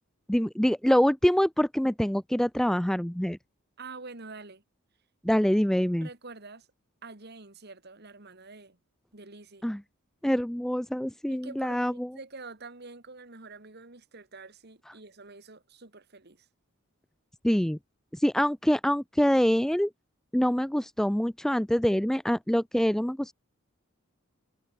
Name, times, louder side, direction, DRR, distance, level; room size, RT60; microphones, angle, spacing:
voice 1, 0.3-3.4 5.2-6.1 9.6-9.8 10.2-12.1 17.4-17.8 18.1-19.9 20.3-23.3, equal, ahead, 0.3 m, -25 dB
voice 2, 3.8-4.6 6.0-6.7 7.0-8.8 9.1-9.7 11.3-16.5, right 3 dB, 50° right, 2.2 m, -46 dB
head